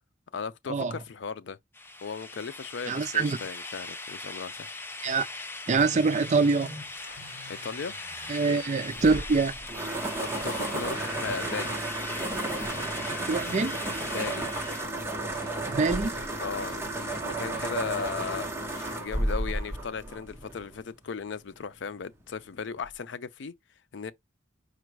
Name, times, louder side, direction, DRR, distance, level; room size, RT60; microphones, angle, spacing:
voice 1, 0.3-1.6 2.0-4.7 7.5-8.0 8.5-8.6 10.2-11.8 14.1-14.5 16.4-18.5 19.0-23.5 23.9-24.1, left 5 dB, 80° left, 0.5 m, -36 dB
sound 1, 1.7-14.9, left 2 dB, 15° left, 0.5 m, -40 dB
voice 2, 2.9-3.4 5.0-5.3 5.7-6.8 8.3-9.6 13.3-13.9 15.7-16.2, right 4 dB, 40° right, 0.4 m, -25 dB
sound 2, 5.8-9.4 10.4-11.8 12.3-14.6 15.3-19.2, left 1 dB, 50° left, 3.2 m, -47 dB
sound 3, 9.0-20.8, right 2 dB, 15° right, 0.9 m, -33 dB
5.0 x 2.2 x 4.6 m
head